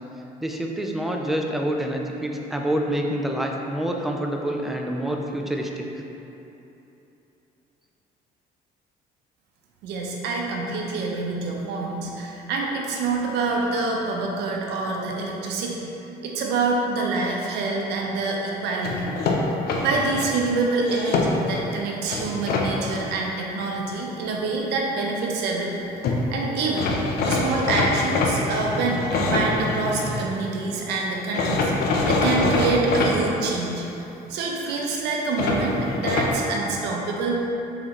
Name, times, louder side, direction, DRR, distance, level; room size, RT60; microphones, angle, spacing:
voice 1, 0.4-6.0, right 1 dB, ahead, 1 dB, 0.3 m, -27 dB
voice 2, 9.8-15.9 16.2-19.1 19.8-25.8 26.3-26.9 27.2-33.8 34.3-37.3, right 3 dB, 85° right, -1 dB, 0.6 m, -26 dB
sound 1, 18.8-20.3 20.8-21.6 22.1-22.7 25.8-25.9 26.0-26.2 26.8-30.2 31.3-33.1 35.4-36.3, left 3 dB, 70° left, 0.6 m, -24 dB
4.0 x 3.9 x 3.0 m, 3.0 s
cardioid pair, 110°, 17 cm